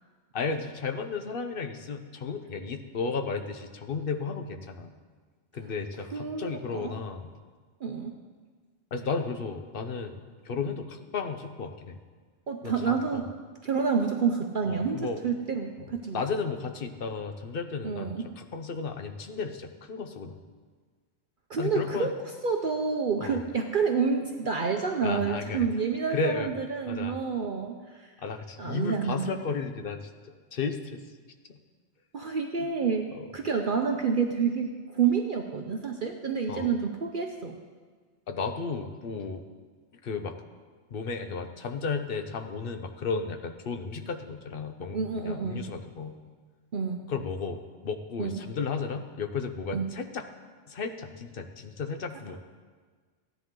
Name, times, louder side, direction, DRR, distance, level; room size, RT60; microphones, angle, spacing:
voice 1, 0.3-4.9 5.5-7.3 8.9-12.0 12.6-13.3 14.7-15.2 15.8-18.1 18.4-20.4 21.6-22.1 23.2-23.4 25.0-25.7 26.1-26.5 26.9-27.2 28.2-30.1 30.5-31.0 31.5-31.6 32.6-32.7 33.1-33.3 36.5-36.7 38.3-39.4 40.0-40.4 40.9-46.2 47.1-50.2 50.7-52.4, left 4 dB, 55° left, 6 dB, 1.0 m, -34 dB
voice 2, 6.1-6.9 7.8-8.2 12.5-13.3 13.6-16.2 17.8-18.3 21.5-22.1 22.4-28.1 28.6-29.3 32.1-33.1 33.3-37.6 44.9-45.7 46.7-47.0 48.2-48.4 49.7-49.9, right 5 dB, 50° right, 4 dB, 0.8 m, -29 dB
15.5 x 10.5 x 3.8 m, 1.5 s
omnidirectional pair, 1.2 m